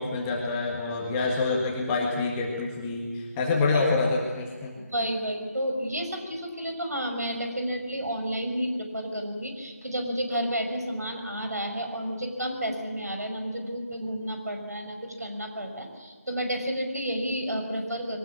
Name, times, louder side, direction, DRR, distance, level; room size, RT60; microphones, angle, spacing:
voice 1, 0.0-4.8, left 3 dB, 10° left, -2 dB, 1.6 m, -27 dB
voice 2, 4.7-18.2, equal, 85° right, 4 dB, 5.8 m, -31 dB
22.5 x 19.5 x 8.5 m, 1.4 s
figure-of-eight pair, 165°, 9 cm